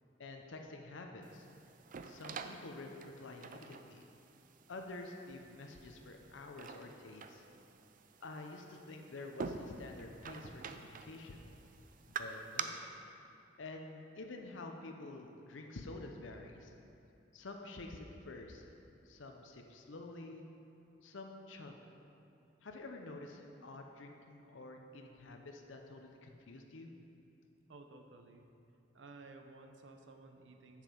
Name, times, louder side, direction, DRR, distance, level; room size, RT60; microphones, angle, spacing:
voice 1, 0.2-1.5 2.0-4.1 4.7-7.5 8.2-11.4 12.1-12.7 13.6-16.7 17.3-18.7 19.0-20.4 21.0-21.8 22.6-26.9, left 2 dB, 80° left, 3 dB, 0.7 m, -49 dB
sound 1, 1.2-12.6, right 5 dB, 45° right, 0.4 m, -48 dB
voice 2, 27.7-28.5 28.9-30.8, right 3 dB, 75° right, 5 dB, 0.7 m, -55 dB
7.4 x 7.3 x 5.2 m, 2.7 s
head